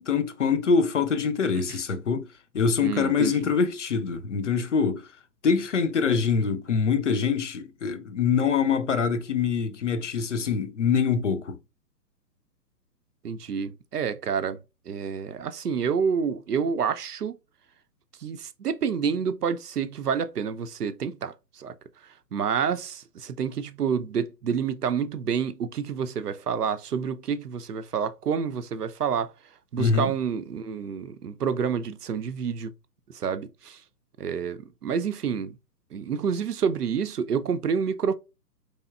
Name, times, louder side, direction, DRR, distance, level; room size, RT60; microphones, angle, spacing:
voice 1, 0.0-2.3 2.5-5.1 5.4-11.6 29.8-30.1, left 6 dB, 50° left, 0.6 m, -24 dB
voice 2, 2.8-3.3 13.2-14.6 14.9-17.4 18.2-21.7 22.3-29.3 29.7-32.7 33.1-33.8 34.2-35.6 35.9-38.1, right 6 dB, 65° right, 0.6 m, -28 dB
4.3 x 3.3 x 2.3 m
figure-of-eight pair, 125°, 50 cm